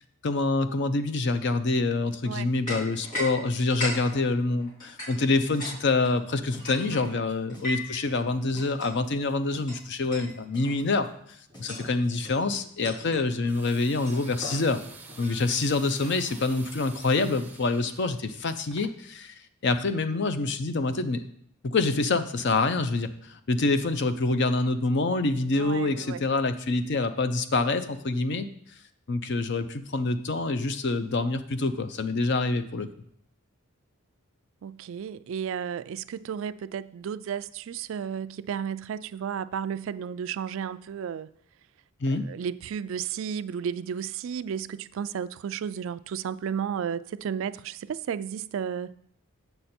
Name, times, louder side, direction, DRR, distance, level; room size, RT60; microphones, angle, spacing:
voice 1, 0.2-11.1 11.6-14.8 15.2-19.3 19.6-21.2 21.6-28.5 29.1-32.9 42.0-42.3, left 3 dB, 55° left, 0.6 m, -26 dB
sound 1, 2.7-3.3 3.6-5.8 6.0-8.0 8.6-8.9 9.7-9.8 10.1-10.3 10.6-10.9 11.5-11.9 12.2-12.4 12.8-13.3 14.1-16.5, left 1 dB, 35° left, 3.8 m, -37 dB
sound 2, 5.3-13.2, equal, 20° left, 1.1 m, -52 dB
voice 2, 6.9-7.3 25.5-26.2 34.6-41.3 42.1-48.9, right 7 dB, 65° right, 0.3 m, -33 dB
sound 3, 13.4-19.0, right 4 dB, 10° right, 0.6 m, -48 dB
8.0 x 6.7 x 4.3 m
head